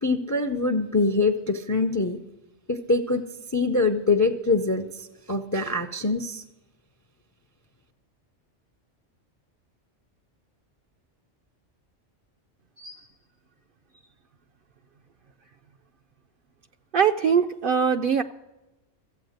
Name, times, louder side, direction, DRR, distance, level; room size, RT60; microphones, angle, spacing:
voice 1, 0.0-2.2 2.7-3.2 3.5-6.4, left 3 dB, 25° left, 9 dB, 0.4 m, -24 dB
voice 2, 16.9-18.2, right 7 dB, 60° right, 7 dB, 0.6 m, -22 dB
14.5 x 8.4 x 6.5 m, 1.0 s
omnidirectional pair, 1.3 m